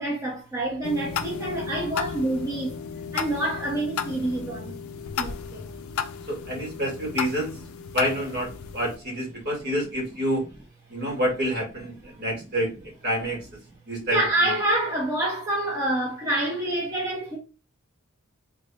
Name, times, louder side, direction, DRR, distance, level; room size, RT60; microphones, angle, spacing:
voice 1, 0.0-2.8 3.1-4.8 5.2-5.6 12.0-12.2 14.1-17.4, right 1 dB, 15° right, 1.1 m, -27 dB
sound 1, 0.8-9.0, left 6 dB, 70° left, 0.4 m, -34 dB
voice 2, 6.3-7.5 7.9-10.5 10.9-12.7 13.0-13.4 13.9-14.2, equal, 50° right, 1.8 m, -27 dB
3.9 x 3.2 x 2.7 m
head